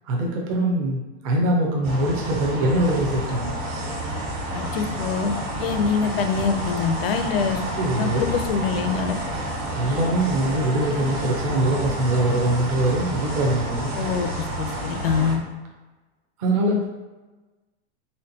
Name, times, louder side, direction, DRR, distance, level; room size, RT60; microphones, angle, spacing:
voice 1, 0.1-3.5 7.8-8.2 9.7-13.9 16.4-16.9, right 1 dB, 30° right, -1 dB, 0.6 m, -23 dB
sound 1, 1.8-15.3, right 1 dB, 45° right, 1.4 m, -29 dB
voice 2, 4.5-7.6 7.9-9.2 13.9-14.3 14.6-15.4, left 6 dB, 55° left, 8 dB, 0.5 m, -24 dB
4.3 x 3.3 x 2.7 m, 1.2 s
supercardioid pair, 180°, 36 cm